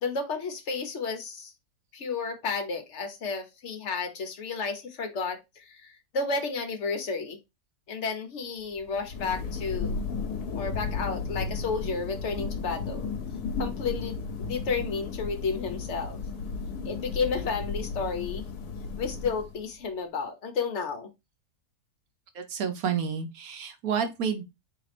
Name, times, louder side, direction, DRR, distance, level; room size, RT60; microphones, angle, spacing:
voice 1, 0.0-1.5 1.9-7.4 7.9-10.1 10.6-13.1 13.6-16.2 16.8-18.5 19.0-21.1, left 4 dB, 50° left, 1.1 m, -32 dB
Thunder, 8.8-19.8, left 5 dB, 75° left, 1.2 m, -34 dB
voice 2, 22.3-24.4, right 7 dB, 70° right, 1.3 m, -30 dB
3.8 x 3.3 x 3.3 m
omnidirectional pair, 1.7 m